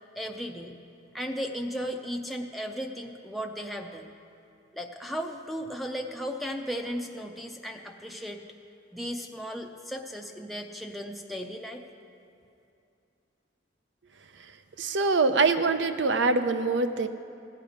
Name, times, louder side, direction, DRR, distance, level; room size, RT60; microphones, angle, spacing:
voice 1, 0.2-0.8 1.1-4.0 4.7-8.4 8.9-11.8, equal, ahead, 1 dB, 0.5 m, -35 dB
voice 2, 14.8-17.1, right 3 dB, 70° right, 10 dB, 0.6 m, -24 dB
16.0 x 9.3 x 5.0 m, 2.7 s
head